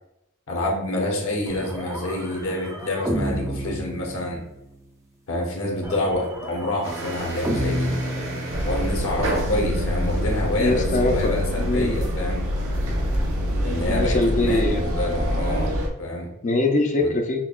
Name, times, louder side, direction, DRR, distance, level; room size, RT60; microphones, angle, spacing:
voice 1, 0.5-4.4 5.3-7.9 8.6-12.4 13.6-15.7 16.0-16.3 17.0-17.1, left 1 dB, 70° left, -1 dB, 1.0 m, -27 dB
sound 1, 1.5-4.7 5.8-9.1, equal, 15° right, 0.5 m, -31 dB
sound 2, 6.8-14.0, equal, 70° right, 1.2 m, -32 dB
sound 3, 8.5-15.9, equal, 85° right, 0.7 m, -26 dB
voice 2, 10.6-12.0 13.8-14.8 16.4-17.4, left 2 dB, 35° left, 4 dB, 0.5 m, -23 dB
5.6 x 2.2 x 2.4 m, 0.85 s
head